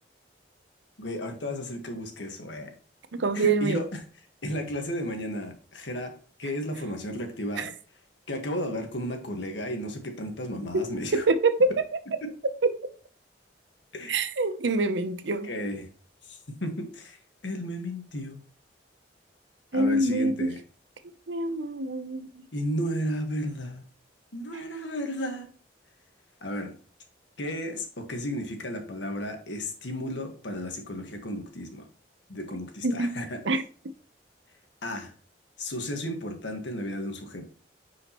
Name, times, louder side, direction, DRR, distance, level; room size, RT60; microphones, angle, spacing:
voice 1, 1.0-2.7 3.3-4.0 4.4-6.1 6.4-7.7 8.3-11.2 13.9-14.2 15.4-15.9 16.2-17.2 17.4-18.4 19.7-20.6 22.5-23.8 24.3-25.5 26.4-26.7 27.4-31.9 32.3-33.4 34.8-35.1 35.6-37.4, equal, 80° left, 1.6 m, -33 dB
voice 2, 3.2-3.8 7.6-7.7 10.7-11.8 12.6-12.7 14.1-15.5 19.7-20.5 21.3-22.3 32.8-33.2 33.4-33.6, right 2 dB, 85° right, 0.7 m, -25 dB
10.0 x 4.9 x 3.0 m
head